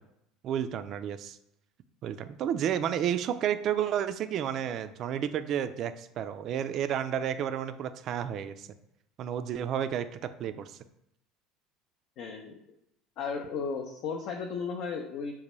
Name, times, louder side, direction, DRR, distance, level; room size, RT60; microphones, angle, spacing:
voice 1, 0.4-1.4 2.0-8.7 9.2-10.1 10.4-10.8, right 9 dB, 50° right, 11 dB, 0.3 m, -31 dB
voice 2, 12.2-12.6 13.2-15.3, left 5 dB, 60° left, 2 dB, 0.5 m, -35 dB
5.3 x 2.2 x 3.0 m, 0.80 s
hypercardioid pair, 75°, 0 cm